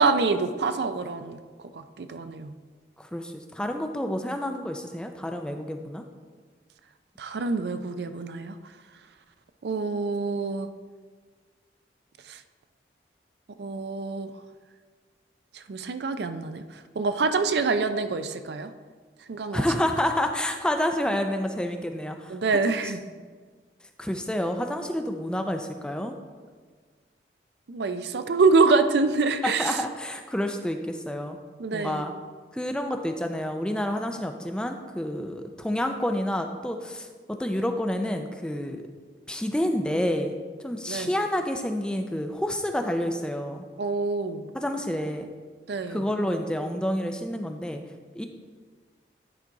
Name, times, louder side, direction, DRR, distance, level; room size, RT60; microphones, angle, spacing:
voice 1, 0.0-1.4 1.7-2.5 7.2-8.5 9.6-10.7 12.3-12.4 13.6-14.3 15.5-16.6 17.0-18.7 19.3-19.6 22.3-23.0 27.7-29.8 31.6-32.0 40.9-41.1 43.8-44.4 45.7-46.0, right 4 dB, 70° right, 9 dB, 0.4 m, -25 dB
voice 2, 3.0-6.0 19.5-22.6 22.8-22.9 23.2-23.3 24.0-26.1 29.4-31.4 31.7-32.1 32.5-37.1 37.4-38.8 39.3-40.3 40.6-43.6 44.5-45.3 45.9-47.8 48.2-48.3, left 1 dB, 5° left, 5 dB, 0.4 m, -29 dB
10.0 x 3.9 x 4.6 m, 1.5 s
head